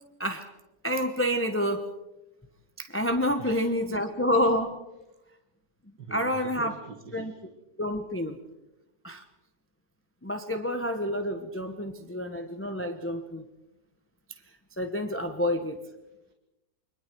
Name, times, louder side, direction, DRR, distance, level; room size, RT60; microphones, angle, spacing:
voice 1, 0.8-1.8 2.8-4.8 6.1-6.7 7.1-7.3 7.8-8.4 9.0-9.2 10.2-13.5 14.8-15.8, equal, 10° left, 5 dB, 0.9 m, -28 dB
voice 2, 3.4-3.7 6.0-7.4 16.3-16.4, right 5 dB, 75° right, 1 dB, 2.6 m, -45 dB
30.0 x 23.0 x 4.6 m, 0.99 s
omnidirectional pair, 1.9 m